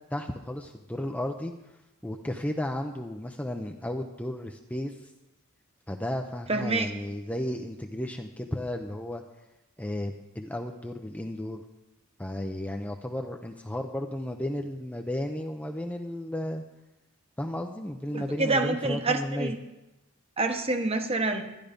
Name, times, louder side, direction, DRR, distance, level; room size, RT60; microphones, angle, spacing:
voice 1, 0.1-1.5 2.0-5.1 5.9-9.2 9.8-11.6 12.2-16.6 17.4-19.5, left 1 dB, 5° left, 3 dB, 0.6 m, -33 dB
voice 2, 6.5-6.9 18.1-19.6 20.4-21.4, right 2 dB, 25° right, 6 dB, 1.0 m, -27 dB
12.5 x 11.0 x 5.2 m, 0.98 s
head